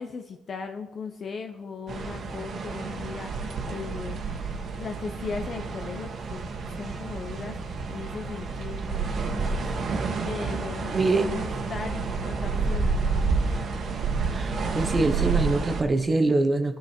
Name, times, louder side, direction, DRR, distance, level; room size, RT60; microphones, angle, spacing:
voice 1, 0.0-4.4 4.7-10.0 10.2-13.3, left 5 dB, 50° left, 6 dB, 0.7 m, -38 dB
sound 1, 1.9-15.8, right 4 dB, 60° right, 1.5 m, -29 dB
voice 2, 10.9-11.3 14.3-16.8, right 2 dB, 25° right, 7 dB, 1.0 m, -24 dB
19.0 x 6.4 x 4.5 m, 1.2 s
cardioid pair, 90°, 0 cm